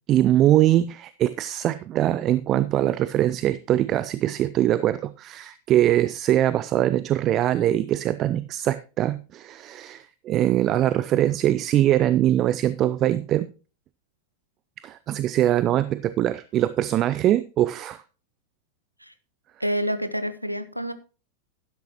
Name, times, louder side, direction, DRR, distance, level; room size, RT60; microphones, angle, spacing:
voice 1, 0.1-13.5 14.8-18.0, right 12 dB, 35° right, 15 dB, 0.5 m, -22 dB
voice 2, 19.6-20.9, equal, 90° right, 13 dB, 0.8 m, -28 dB
11.5 x 10.5 x 3.0 m, 0.34 s
figure-of-eight pair, 90°, 0 cm